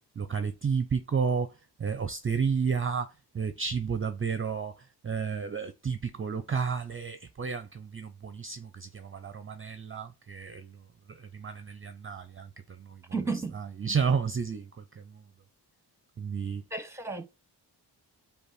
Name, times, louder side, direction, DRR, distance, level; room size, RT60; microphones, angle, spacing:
voice 1, 0.2-1.5 1.8-4.7 5.0-10.7 11.1-12.5 12.8-13.0 13.5-15.0 16.2-16.6, right 6 dB, 30° right, 0.5 m, -31 dB
voice 2, 13.1-13.6 16.7-17.3, right 4 dB, 5° right, 0.8 m, -33 dB
5.3 x 2.4 x 4.1 m
cardioid pair, 65°, 42 cm